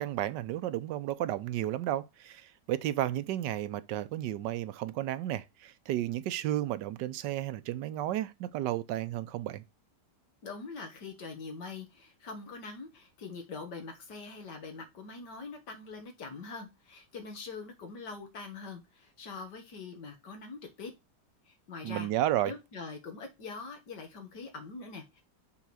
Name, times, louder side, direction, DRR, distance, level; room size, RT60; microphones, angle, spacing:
voice 1, 0.0-9.6 21.8-22.5, right 13 dB, 90° right, 1.3 m, -32 dB
voice 2, 10.4-20.9 21.5-22.1 22.4-25.2, left 4 dB, 80° left, 2.3 m, -43 dB
5.8 x 3.9 x 6.1 m
omnidirectional pair, 1.8 m